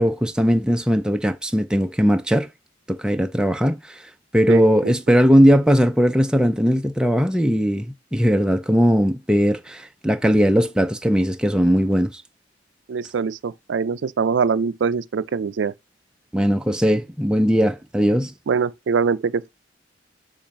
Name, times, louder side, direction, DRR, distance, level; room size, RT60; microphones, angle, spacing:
voice 1, 0.0-2.5 2.9-3.8 4.3-12.2 16.3-18.3, equal, 5° right, 0.4 m, -19 dB
voice 2, 4.5-4.9 12.9-15.7 18.5-19.5, right 5 dB, 70° right, 0.4 m, -23 dB
7.1 x 2.5 x 5.2 m
head